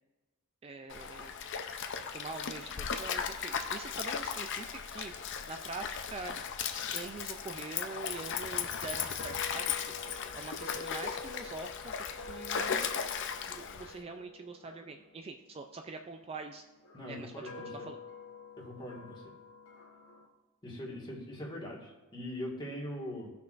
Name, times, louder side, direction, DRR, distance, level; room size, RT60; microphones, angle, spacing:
voice 1, 0.6-1.3 2.1-5.1 5.5-6.4 6.9-9.7 10.3-11.9 12.3-12.9 13.5-16.6 17.1-18.0, right 3 dB, 25° right, 5 dB, 0.3 m, -44 dB
Stream, 0.9-14.0, left 7 dB, 55° left, 0.6 m, -37 dB
sound 1, 7.9-16.1 16.8-20.3, left 4 dB, 75° left, 1.0 m, -49 dB
voice 2, 16.9-17.9 18.6-19.2 20.6-23.3, left 1 dB, 20° left, -3 dB, 1.7 m, -41 dB
16.0 x 5.8 x 2.5 m, 1.1 s
head